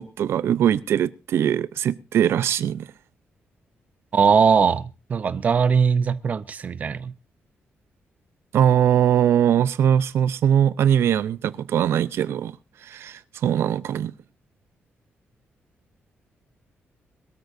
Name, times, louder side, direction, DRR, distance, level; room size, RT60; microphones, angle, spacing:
voice 1, 0.0-2.9 8.5-12.6 12.8-14.1, right 9 dB, 75° right, 0.6 m, -21 dB
voice 2, 4.1-7.1, right 6 dB, 35° right, 0.7 m, -20 dB
22.0 x 13.0 x 2.7 m
wide cardioid pair, 170°, 4 cm